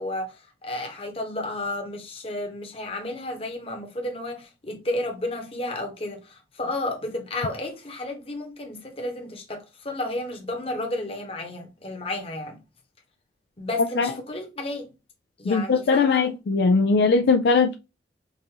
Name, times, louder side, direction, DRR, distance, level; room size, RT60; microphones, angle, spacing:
voice 1, 0.0-12.6 13.6-14.9 15.4-16.3, left 1 dB, 30° left, 1.1 m, -32 dB
voice 2, 15.5-17.8, left 4 dB, 65° left, 0.3 m, -20 dB
5.4 x 2.6 x 2.9 m
head